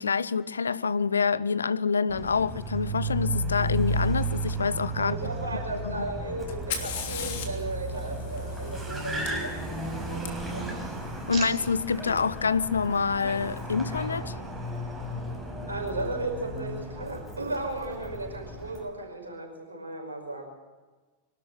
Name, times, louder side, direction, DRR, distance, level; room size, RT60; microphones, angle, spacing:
voice 1, 0.0-5.1 5.8-6.0 11.3-14.3, left 5 dB, 75° left, 0.6 m, -27 dB
Car, 2.1-18.8, right 1 dB, 10° right, 6.0 m, -34 dB
voice 2, 5.0-10.9 15.7-20.4, right 2 dB, 75° right, 5.6 m, -35 dB
Fire, 6.5-10.3 12.2-12.3 13.1-13.5, left 7 dB, 55° left, 3.0 m, -38 dB
sound 1, 8.3-9.4 9.7-10.4 10.7-12.2 12.7-13.0, right 6 dB, 25° right, 4.8 m, -45 dB
24.5 x 13.0 x 9.1 m
figure-of-eight pair, 90°, 0 cm